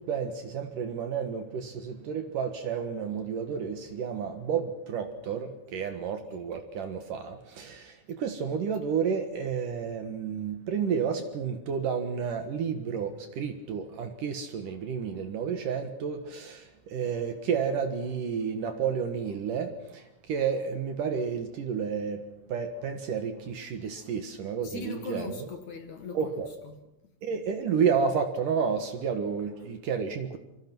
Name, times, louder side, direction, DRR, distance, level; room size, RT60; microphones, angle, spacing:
voice 1, 0.0-22.2 22.5-25.5 26.1-26.5 27.2-30.4, right 6 dB, 60° right, 2.3 m, -31 dB
voice 2, 24.6-26.8, left 5 dB, 55° left, 2.2 m, -40 dB
26.5 x 24.0 x 6.1 m
omnidirectional pair, 5.7 m